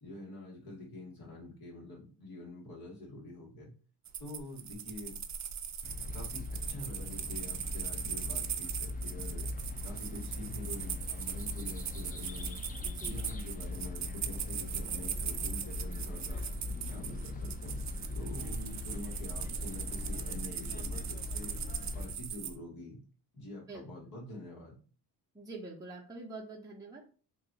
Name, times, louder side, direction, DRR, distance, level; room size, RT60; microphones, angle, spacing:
voice 1, 0.0-3.7 4.2-5.2 6.1-9.5 9.8-12.6 13.0-16.4 16.8-17.8 18.1-21.6 21.9-23.0 23.3-24.8, left 1 dB, 60° left, -4 dB, 1.5 m, -46 dB
sound 1, 4.0-22.5, right 8 dB, 45° right, 0.4 m, -40 dB
sound 2, 5.8-22.1, left 2 dB, 20° left, 0.4 m, -40 dB
voice 2, 12.8-13.2 18.7-18.8 23.7-23.8 25.3-27.1, right 2 dB, 10° right, -3 dB, 0.7 m, -45 dB
2.7 x 2.3 x 3.9 m, 0.39 s
cardioid pair, 90°, 40 cm